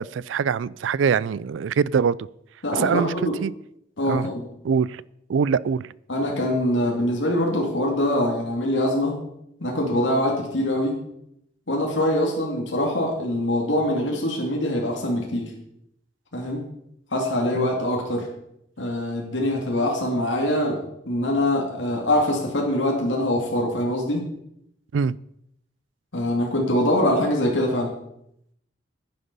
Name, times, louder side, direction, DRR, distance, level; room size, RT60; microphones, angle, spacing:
voice 1, 0.0-2.2 2.7-3.1 3.4-3.5 4.1-4.3 4.6-5.0 5.3-5.8 17.5-17.7 24.9-25.2, right 6 dB, 85° right, 22 dB, 0.4 m, -23 dB
voice 2, 2.6-3.4 4.0-4.5 6.1-9.1 9.6-11.0 11.7-15.5 16.3-16.6 17.1-18.3 18.8-20.8 21.1-24.2 26.1-27.9, left 1 dB, 85° left, -1 dB, 2.6 m, -23 dB
10.5 x 9.9 x 5.4 m, 0.76 s
head